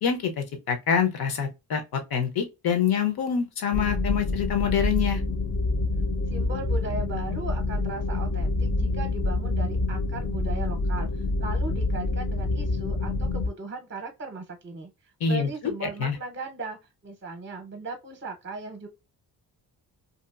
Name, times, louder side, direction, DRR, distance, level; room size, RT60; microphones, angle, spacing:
voice 1, 0.0-5.2 15.2-15.5 16.0-16.2, left 7 dB, 65° left, 0.8 m, -26 dB
sound 1, 3.7-13.5, left 2 dB, 35° left, 0.5 m, -27 dB
voice 2, 6.3-14.9 15.2-16.8 17.0-18.9, right 3 dB, 30° right, 0.7 m, -37 dB
2.8 x 2.4 x 2.4 m
cardioid pair, 65°, 40 cm